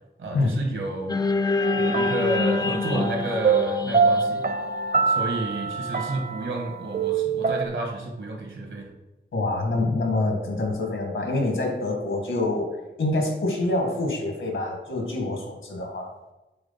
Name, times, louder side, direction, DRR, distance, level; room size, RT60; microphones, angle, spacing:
voice 1, 0.2-1.2 1.7-4.4 5.1-8.9, right 1 dB, 85° right, 1 dB, 1.9 m, -31 dB
sound 1, 1.1-5.4, left 3 dB, 20° left, 0.3 m, -26 dB
sound 2, 1.6-7.7, right 5 dB, 55° right, 0.7 m, -25 dB
voice 2, 9.3-16.1, left 2 dB, 85° left, 2 dB, 1.9 m, -26 dB
7.8 x 3.9 x 5.8 m, 1.0 s
wide cardioid pair, 120°, 19 cm